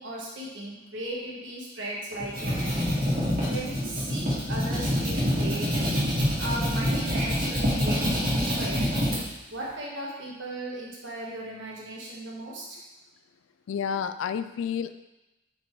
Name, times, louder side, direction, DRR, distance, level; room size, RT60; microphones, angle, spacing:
voice 1, 0.0-2.9 3.5-6.0 6.4-8.9 9.5-12.8, right 1 dB, 65° right, -3 dB, 1.5 m, -36 dB
sound 1, 2.1-9.2, equal, 45° right, 1.9 m, -26 dB
voice 2, 13.7-14.9, left 7 dB, 75° left, 12 dB, 0.3 m, -30 dB
5.2 x 4.3 x 4.6 m, 0.99 s
head